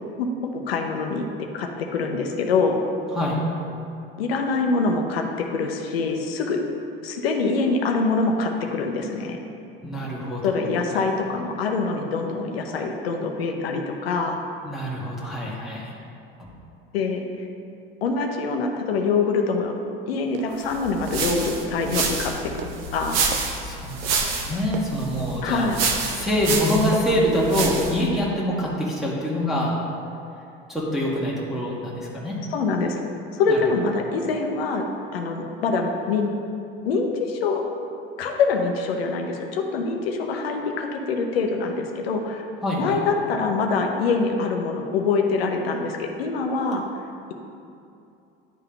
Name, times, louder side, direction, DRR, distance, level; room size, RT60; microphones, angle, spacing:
voice 1, 0.2-1.3 1.5-2.8 4.2-6.6 7.0-9.4 10.4-14.4 16.9-17.2 18.0-19.7 20.1-22.3 22.9-23.2 25.4-25.8 32.5-33.0 33.3-34.8 35.1-36.3 36.9-37.6 38.2-42.5 42.8-46.8, left 4 dB, 90° left, 3 dB, 0.7 m, -24 dB
voice 2, 9.8-10.6 10.9-11.0 14.6-15.9 23.6-25.7 26.1-29.8 30.7-32.4 33.5-33.6 42.6-43.0, equal, ahead, -6 dB, 1.5 m, -25 dB
sound 1, 20.2-22.3 22.6-27.2, right 8 dB, 80° right, 0.5 m, -40 dB
sound 2, 20.7-28.1, right 4 dB, 60° right, 1.1 m, -28 dB
10.5 x 3.5 x 3.8 m, 2.6 s
hypercardioid pair, 80°, 29 cm